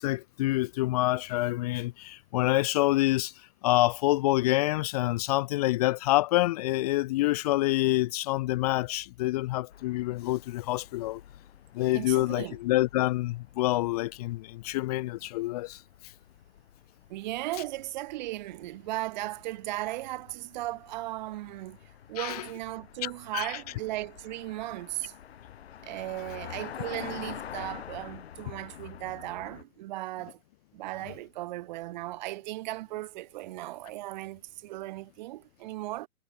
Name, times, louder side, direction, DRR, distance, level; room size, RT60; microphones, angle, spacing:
voice 1, 0.0-11.2 11.7-16.1 22.2-22.5 23.0-23.6, left 18 dB, 25° left, 1.8 m, -27 dB
sound 1, 9.7-29.6, left 9 dB, 45° left, 6.0 m, -47 dB
voice 2, 11.9-12.6 17.1-21.8 22.1-25.1 25.8-30.4 30.7-36.1, right 17 dB, 30° right, 4.1 m, -36 dB
figure-of-eight pair, 130°, 44 cm